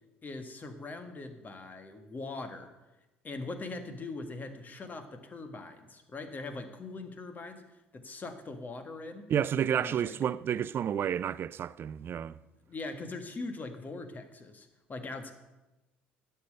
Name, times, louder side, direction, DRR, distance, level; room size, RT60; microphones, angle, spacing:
voice 1, 0.2-2.7 3.2-7.6 7.9-9.3 9.7-10.2 12.7-15.3, left 3 dB, 30° left, 1.6 m, -41 dB
voice 2, 9.3-12.4, right 9 dB, 40° right, 0.4 m, -30 dB
11.5 x 7.0 x 6.5 m
hypercardioid pair, 60°, 6 cm